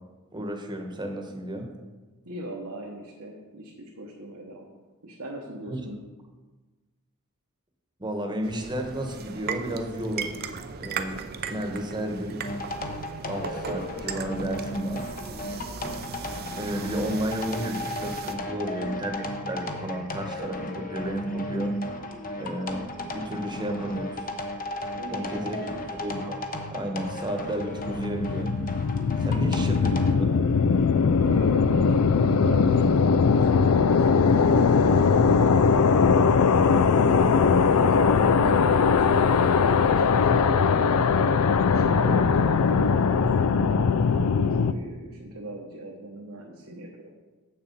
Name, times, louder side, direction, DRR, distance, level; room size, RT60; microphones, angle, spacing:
voice 1, 0.3-1.7 5.7-5.8 8.0-10.4 10.8-11.2 11.4-12.4 13.3-15.1 16.6-21.8 22.3-22.9 23.1-24.3 25.1-26.4 26.7-28.5 29.2-30.5 36.7-37.1 42.0-42.2, equal, 20° right, 3 dB, 1.1 m, -32 dB
voice 2, 2.2-4.7 5.0-6.0 24.9-25.8 29.4-29.7 31.2-35.1 37.1-39.3 39.8-40.9 41.6-43.5 44.3-47.0, right 1 dB, 70° right, -2 dB, 1.1 m, -39 dB
sound 1, 8.4-18.4, right 6 dB, 45° right, 0.6 m, -37 dB
sound 2, 12.4-30.2, left 1 dB, 40° left, 0.9 m, -34 dB
sound 3, 27.6-44.7, left 5 dB, 75° left, 0.4 m, -20 dB
7.5 x 6.7 x 5.3 m, 1.2 s
head